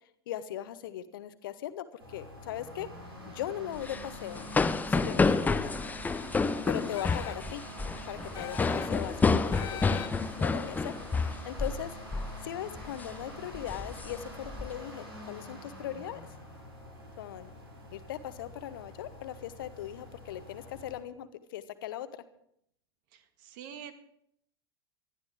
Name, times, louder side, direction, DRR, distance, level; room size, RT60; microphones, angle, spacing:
voice 1, 0.3-2.9 3.3-4.5 4.9-5.7 6.7-7.7 8.1-10.0 10.4-12.0 12.4-16.2 17.2-17.5 17.9-22.2, left 11 dB, 60° left, 12 dB, 1.0 m, -39 dB
sound 1, 2.0-21.0, equal, 80° right, 6.6 m, -46 dB
sound 2, 3.8-11.8 12.1-12.4 12.8-13.1 13.5-14.7, left 4 dB, 15° left, 0.7 m, -29 dB
sound 3, 6.9-7.5 8.3-9.0 9.5-10.4, left 10 dB, 30° left, 1.6 m, -42 dB
voice 2, 23.1-23.9, right 8 dB, 55° right, 9 dB, 1.8 m, -46 dB
19.5 x 13.0 x 3.6 m, 0.72 s
figure-of-eight pair, 80°, 13 cm